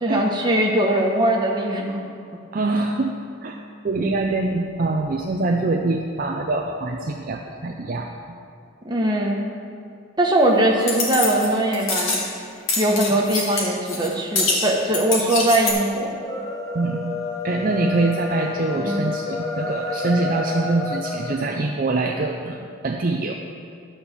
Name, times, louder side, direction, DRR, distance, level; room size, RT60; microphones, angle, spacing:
voice 1, 0.0-2.0 8.8-9.4 10.2-12.2 12.8-16.1 18.8-19.1, right 1 dB, 20° right, -1 dB, 1.1 m, -21 dB
voice 2, 2.5-3.1 3.4-8.1 16.7-17.1 17.4-22.6 22.8-23.3, right 3 dB, 40° right, 1 dB, 0.4 m, -24 dB
sound 1, 10.8-11.5 11.7-12.3 12.7-14.1 14.3-15.7, left 3 dB, 85° left, 1.8 m, -25 dB
sound 2, 16.1-21.4, left 4 dB, 15° left, 0.7 m, -29 dB
11.5 x 4.3 x 7.0 m, 2.3 s
head